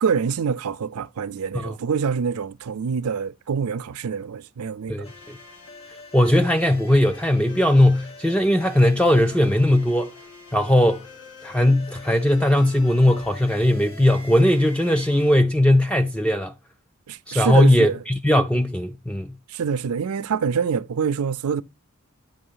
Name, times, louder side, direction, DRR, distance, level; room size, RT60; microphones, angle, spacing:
voice 1, 0.0-5.0 17.1-18.0 19.5-21.6, right 6 dB, 85° right, 0.4 m, -25 dB
voice 2, 4.9-5.4 6.1-10.1 10.5-11.1 11.4-16.5 17.3-19.3, left 1 dB, 5° left, 0.3 m, -19 dB
sound 1, 5.0-15.4, left 2 dB, 90° left, 1.4 m, -44 dB
8.8 x 3.1 x 5.5 m
head